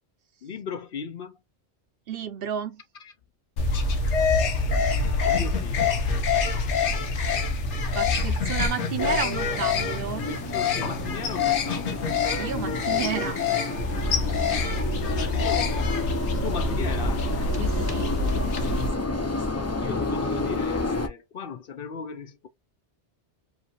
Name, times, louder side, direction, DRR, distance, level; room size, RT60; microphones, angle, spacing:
voice 1, 0.4-1.4 3.0-3.1 4.8-6.0 10.3-12.1 15.0-16.0 16.4-17.3 19.8-22.5, left 5 dB, 60° left, 0.8 m, -37 dB
voice 2, 2.1-2.8 7.9-10.3 12.4-13.4 17.6-18.1, right 8 dB, 60° right, 0.8 m, -31 dB
sound 1, 3.6-18.9, left 4 dB, 85° left, 1.2 m, -26 dB
sound 2, 9.0-21.1, left 2 dB, 25° left, 0.4 m, -31 dB
4.9 x 2.7 x 2.9 m
omnidirectional pair, 1.2 m